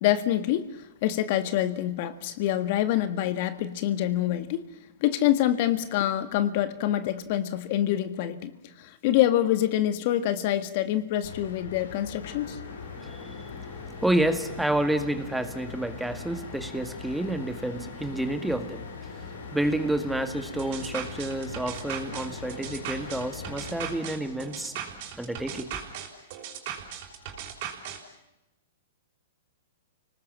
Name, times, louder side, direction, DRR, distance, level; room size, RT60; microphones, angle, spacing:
voice 1, 0.0-4.6 5.0-8.5 8.8-12.6, left 12 dB, 50° left, 1.7 m, -26 dB
sound 1, 11.2-24.0, left 5 dB, 85° left, 4.2 m, -41 dB
voice 2, 12.4-25.9, right 1 dB, 5° right, 1.9 m, -30 dB
sound 2, 20.6-28.0, right 9 dB, 50° right, 5.6 m, -38 dB
30.0 x 19.5 x 7.5 m
hypercardioid pair, 140°, 0 cm